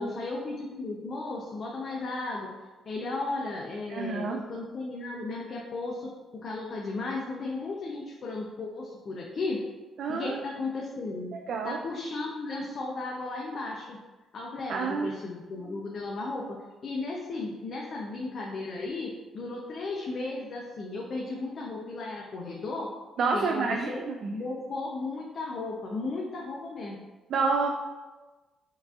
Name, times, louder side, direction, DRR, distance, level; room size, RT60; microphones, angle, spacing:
voice 1, 0.0-2.5 2.8-6.1 6.4-9.6 10.1-11.3 11.6-14.0 14.3-16.6 16.8-22.9 23.3-24.1 24.3-27.0, left 3 dB, 55° left, -3 dB, 0.6 m, -35 dB
voice 2, 3.9-4.4 10.0-10.4 11.3-11.8 14.7-15.1 23.2-24.4 27.3-27.7, right 4 dB, 70° right, 2 dB, 0.3 m, -29 dB
4.6 x 2.6 x 2.4 m, 1.2 s
cardioid pair, 90°, 0 cm